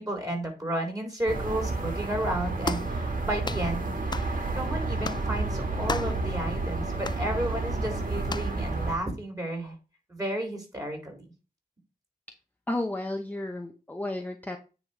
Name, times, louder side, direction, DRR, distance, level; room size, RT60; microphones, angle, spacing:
voice 1, 0.0-9.8 10.1-11.3, right 1 dB, 20° right, 1 dB, 3.8 m, -33 dB
sound 1, 1.3-9.0, right 3 dB, 55° right, 1.7 m, -30 dB
sound 2, 2.6-2.9 3.4-3.7 4.1-4.3 5.0-5.3 5.9-6.2 7.0-7.2 8.3-8.5, left 4 dB, 25° left, 0.3 m, -33 dB
voice 2, 12.7-14.6, left 1 dB, 10° left, 3 dB, 0.8 m, -32 dB
9.3 x 3.1 x 5.1 m, 0.32 s
cardioid pair, 55°, 16 cm